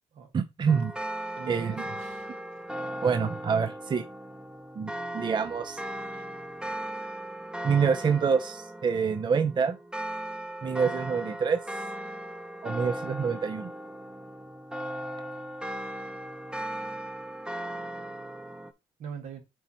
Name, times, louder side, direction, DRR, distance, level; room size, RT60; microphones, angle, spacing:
voice 1, 0.3-0.9 1.5-1.8 3.0-4.1 4.8-5.8 7.6-9.8 10.6-11.6 12.6-13.7, right 6 dB, 40° right, 0.6 m, -26 dB
sound 1, 0.7-18.7, right 1 dB, 5° right, 0.8 m, -37 dB
voice 2, 1.4-2.7 19.0-19.4, right 7 dB, 75° right, 1.8 m, -42 dB
7.9 x 2.9 x 4.2 m
cardioid pair, 70°, 12 cm